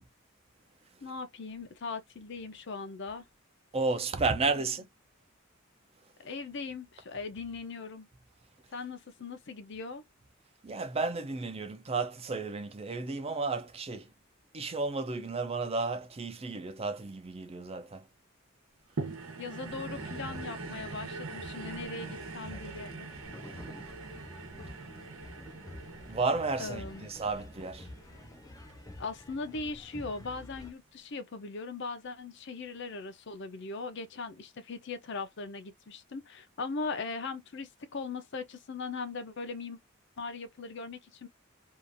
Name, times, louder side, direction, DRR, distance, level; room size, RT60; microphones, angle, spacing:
voice 1, 1.0-3.2 4.5-4.7 6.2-8.1 8.7-10.0 19.4-23.1 26.6-27.1 29.0-39.8 40.2-41.3, left 4 dB, 60° left, 0.6 m, -39 dB
voice 2, 3.7-4.9 10.6-14.1 14.5-18.0 26.1-27.9, right 3 dB, 30° right, 0.5 m, -32 dB
sound 1, 19.0-29.5 30.1-30.2, right 3 dB, 90° right, 0.9 m, -43 dB
sound 2, 19.6-30.7, left 1 dB, 15° left, 0.7 m, -49 dB
2.8 x 2.4 x 2.5 m
head